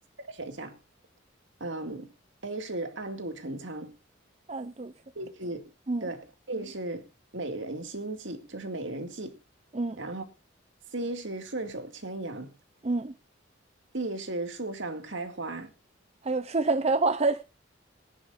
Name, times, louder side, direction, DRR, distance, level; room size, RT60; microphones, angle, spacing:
voice 1, 0.3-0.8 1.6-2.1 2.4-4.0 5.2-5.7 6.0-7.1 7.3-9.4 10.0-10.3 10.9-12.5 13.9-15.7, right 2 dB, 70° right, 2.2 m, -36 dB
voice 2, 4.5-4.9 5.9-6.1 9.7-10.0 12.8-13.1 16.2-17.4, right 3 dB, 30° right, 0.6 m, -27 dB
23.5 x 10.5 x 2.6 m
head